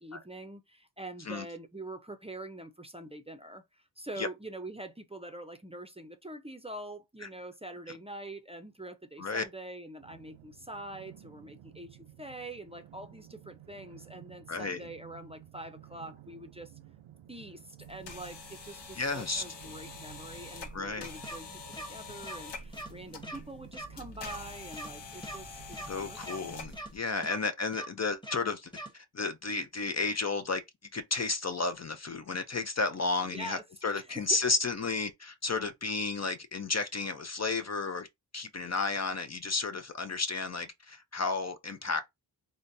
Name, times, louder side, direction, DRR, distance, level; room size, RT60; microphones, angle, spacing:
voice 1, 0.0-16.7 17.3-26.5 27.3-27.5 33.3-33.6 33.9-34.4 38.6-38.8, right 1 dB, 15° right, 0.6 m, -45 dB
sound 1, 10.0-26.8, right 12 dB, 85° right, 0.6 m, -54 dB
voice 2, 14.5-14.8 19.0-19.4 20.7-21.1 25.9-30.6 30.9-38.1 38.3-42.0, left 3 dB, 35° left, 0.5 m, -32 dB
sound 2, 17.8-27.0, left 4 dB, 65° left, 0.9 m, -46 dB
sound 3, 21.2-21.4 21.7-21.9 22.2-22.4 22.7-22.9 23.2-23.4 23.7-23.9 24.2-24.4 24.7-24.9 25.2-25.4 25.7-25.9 26.2-26.4 26.7-26.9 27.2-27.4 27.7-27.9 28.2-28.4 28.7-28.9, right 1 dB, 10° left, 1.0 m, -41 dB
3.9 x 2.2 x 2.6 m
cardioid pair, 45°, 46 cm